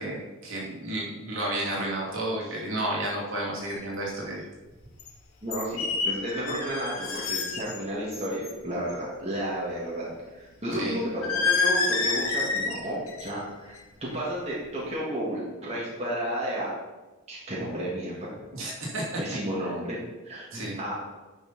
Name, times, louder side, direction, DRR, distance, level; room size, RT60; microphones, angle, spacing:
voice 1, 0.0-4.4 10.7-11.0 18.5-19.0 20.5-20.8, right 1 dB, 65° right, -4 dB, 2.7 m, -32 dB
sound 1, 3.7-3.8 5.0-5.1 5.5-7.8 8.1-8.5 11.2-12.8 13.1-13.4 13.7-14.1, left 4 dB, 85° left, 1.3 m, -28 dB
voice 2, 5.4-10.1 10.3-16.7 17.3-18.3 19.2-20.9, right 1 dB, 30° right, -6 dB, 2.1 m, -32 dB
10.5 x 5.7 x 4.4 m, 1.2 s
head